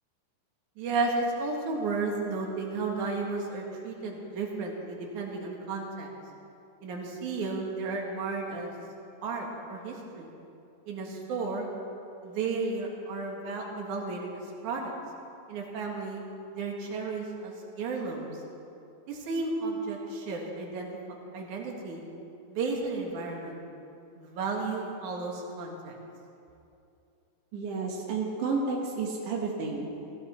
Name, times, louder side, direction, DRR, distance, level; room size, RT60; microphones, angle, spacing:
voice 1, 0.8-6.1 6.8-8.7 9.2-10.3 10.9-11.7 12.2-14.3 14.6-14.9 15.5-16.2 16.5-18.3 19.1-20.9 21.3-22.0 22.5-23.6 24.2-25.9, right 3 dB, 55° right, 0 dB, 2.4 m, -33 dB
voice 2, 27.5-29.9, right 4 dB, 75° right, -2 dB, 1.9 m, -31 dB
18.0 x 15.0 x 4.3 m, 2.7 s
omnidirectional pair, 5.6 m